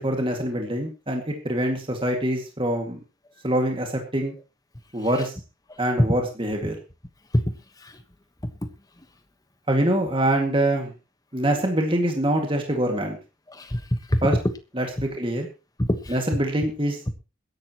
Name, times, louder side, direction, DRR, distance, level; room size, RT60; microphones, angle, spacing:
voice 1, 0.0-3.0 3.4-4.3 4.9-5.3 5.8-6.8 9.7-10.9 11.3-13.2 14.2-14.4 14.8-15.5 16.1-17.1, right 1 dB, 25° right, 2 dB, 2.2 m, -24 dB
voice 2, 5.7-6.1 7.3-8.0 8.6-8.7 13.5-14.2 15.8-16.2, equal, 20° left, 9 dB, 1.3 m, -25 dB
21.5 x 11.0 x 3.0 m, 0.29 s
head